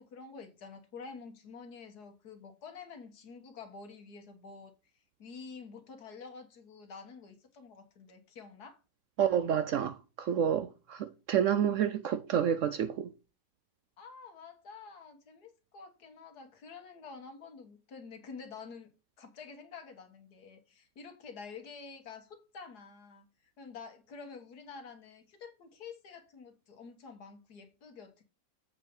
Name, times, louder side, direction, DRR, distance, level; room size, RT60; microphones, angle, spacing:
voice 1, 0.0-4.7 5.2-8.8 14.0-18.9 19.2-23.3 23.6-28.2, left 5 dB, 65° left, 1.8 m, -48 dB
voice 2, 9.2-13.1, right 9 dB, 75° right, 0.7 m, -29 dB
7.8 x 4.9 x 5.1 m
omnidirectional pair, 1.8 m